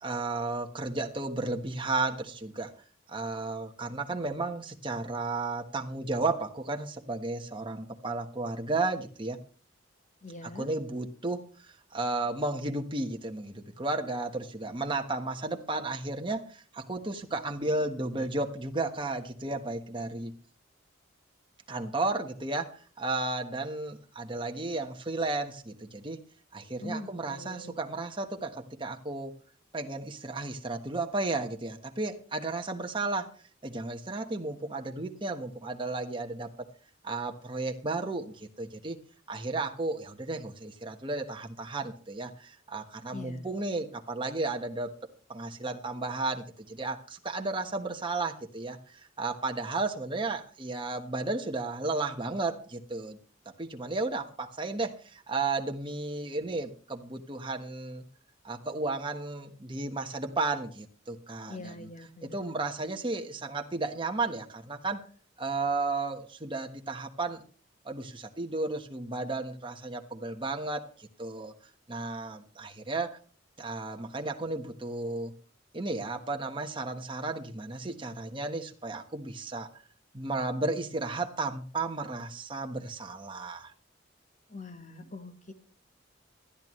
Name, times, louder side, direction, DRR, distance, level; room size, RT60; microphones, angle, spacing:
voice 1, 0.0-2.7 3.1-9.4 10.4-20.3 21.7-26.2 26.5-29.3 29.7-33.3 33.6-36.5 37.0-39.0 39.3-44.9 45.3-53.2 53.6-58.0 58.4-61.9 62.2-65.0 65.4-67.4 67.8-71.5 71.9-73.2 73.6-75.3 75.7-79.7 80.1-83.7, right 3 dB, 25° right, 4 dB, 1.3 m, -33 dB
voice 2, 10.2-10.7 26.8-27.8 43.1-43.5 61.5-62.6 84.5-85.5, left 2 dB, 40° left, 8 dB, 1.5 m, -43 dB
20.0 x 12.5 x 3.2 m, 0.40 s
head